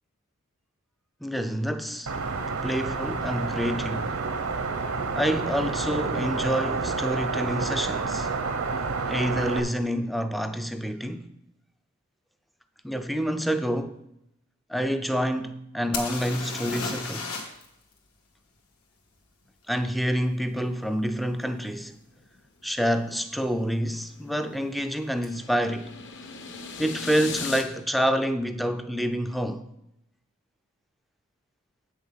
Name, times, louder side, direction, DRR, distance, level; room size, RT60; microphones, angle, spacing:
voice 1, 1.2-2.1 2.6-4.2 5.1-8.3 9.1-11.3 12.8-14.0 14.7-17.3 19.7-21.9 22.6-25.9 26.8-29.6, equal, ahead, 0.4 m, -27 dB
sound 1, 2.1-9.6, right 4 dB, 70° right, 0.9 m, -29 dB
sound 2, 15.9-17.6 17.9-18.0 21.4-21.5 22.2-22.3 22.6-23.2 25.2-25.3 25.6-25.7, left 4 dB, 80° left, 1.6 m, -34 dB
sound 3, 23.4-27.6, left 5 dB, 55° left, 1.0 m, -39 dB
8.1 x 6.3 x 5.6 m
head